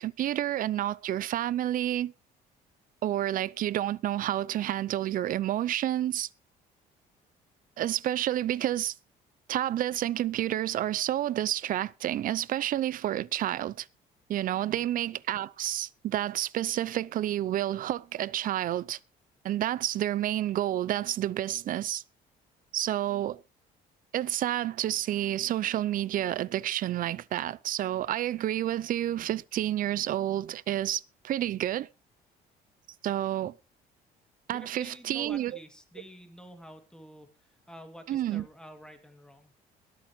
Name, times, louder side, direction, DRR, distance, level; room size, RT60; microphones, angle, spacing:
voice 1, 0.0-2.1 3.0-6.3 7.8-8.9 9.5-13.9 14.3-19.0 19.4-22.0 22.7-23.4 24.1-31.9 33.0-33.5 34.5-35.5 38.1-38.4, right 12 dB, 55° right, 0.6 m, -29 dB
voice 2, 34.5-39.5, equal, 5° left, 2.6 m, -49 dB
22.0 x 8.7 x 3.2 m
cardioid pair, 110°, 17 cm